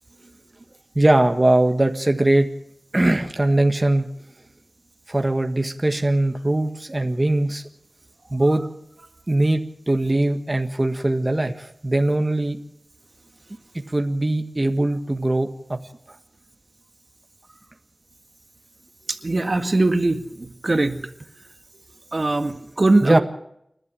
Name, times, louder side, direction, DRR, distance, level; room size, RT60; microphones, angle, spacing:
voice 1, 0.9-2.5 2.9-4.1 5.1-7.6 8.3-8.6 9.3-9.6 9.9-12.6 13.9-15.8 23.0-23.2, right 1 dB, 30° right, 5 dB, 1.6 m, -20 dB
voice 2, 19.1-21.1 22.1-23.2, right 2 dB, 50° right, 8 dB, 1.8 m, -21 dB
29.0 x 12.5 x 7.6 m, 0.76 s
wide cardioid pair, 60°, 0 cm